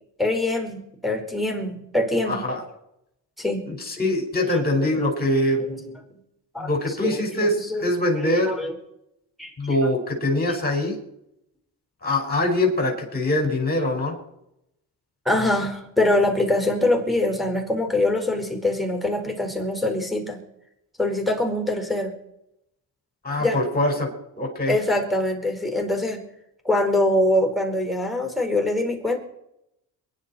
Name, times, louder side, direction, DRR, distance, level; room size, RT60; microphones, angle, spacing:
voice 1, 0.2-2.4 3.4-3.6 4.3-5.1 5.6-6.0 6.5-6.7 7.0-7.9 8.2-8.8 9.4-9.5 15.2-20.4 21.0-22.1 23.4-23.6 24.7-26.2 26.6-29.2, left 1 dB, ahead, 3 dB, 4.8 m, -24 dB
voice 2, 2.3-2.6 3.7-5.6 6.6-8.5 9.6-11.0 12.0-14.2 23.2-24.1 24.4-24.8, left 1 dB, 25° left, 2 dB, 5.4 m, -23 dB
23.5 x 11.0 x 4.4 m, 0.81 s
cardioid pair, 80°, 40 cm